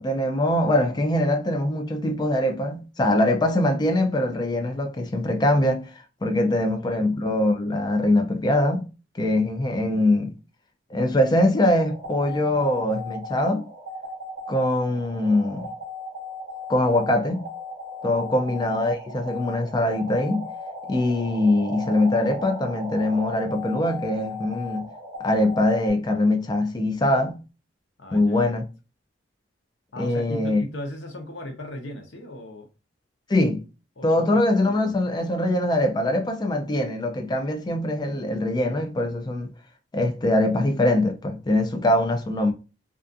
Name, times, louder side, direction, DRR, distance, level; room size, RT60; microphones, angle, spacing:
voice 1, 0.0-5.9 6.2-8.9 9.1-10.3 10.9-13.6 14.5-15.7 16.7-17.5 18.0-20.5 20.9-24.9 25.2-27.4 28.1-28.6 30.0-30.6 33.3-33.6 34.0-39.5 39.9-42.5, left 1 dB, 25° left, 0.4 m, -22 dB
voice 2, 6.5-7.1 18.0-18.4 28.0-28.4 29.9-32.7 34.0-34.9, left 1 dB, 80° left, 0.7 m, -38 dB
sound 1, 11.8-25.9, left 2 dB, 45° right, 0.9 m, -37 dB
2.4 x 2.3 x 2.5 m
head